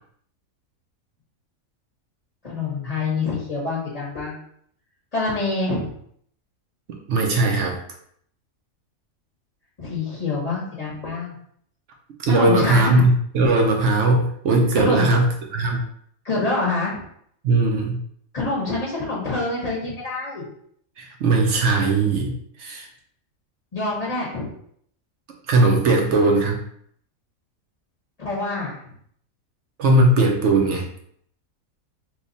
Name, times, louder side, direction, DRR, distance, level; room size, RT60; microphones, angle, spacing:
voice 1, 2.4-4.4 5.1-5.9 9.8-11.3 12.3-13.0 14.7-15.1 16.2-17.0 18.3-20.5 23.7-24.5 28.2-28.7, left 3 dB, 30° left, -6 dB, 0.9 m, -26 dB
voice 2, 7.1-7.8 12.2-15.2 15.5-15.8 17.4-18.0 21.0-22.3 22.6-22.9 25.5-26.6 29.8-30.8, right 2 dB, 65° right, 1 dB, 0.8 m, -19 dB
3.0 x 2.3 x 3.9 m, 0.65 s
omnidirectional pair, 1.5 m